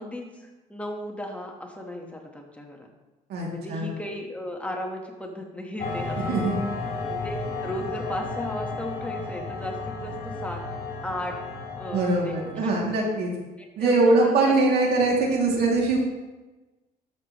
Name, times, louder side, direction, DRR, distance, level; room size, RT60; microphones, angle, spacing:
voice 1, 0.0-2.9 3.5-6.5 7.1-10.6 11.0-11.4 11.8-12.7 13.6-14.6 15.3-15.4, left 1 dB, 10° left, 1 dB, 1.3 m, -35 dB
voice 2, 3.3-3.9 6.2-6.6 11.9-13.3 13.8-16.0, right 3 dB, 70° right, -2 dB, 2.5 m, -22 dB
sound 1, 5.8-12.8, left 3 dB, 60° left, 3.2 m, -33 dB
13.0 x 6.7 x 3.1 m, 1.1 s
cardioid pair, 110°, 17 cm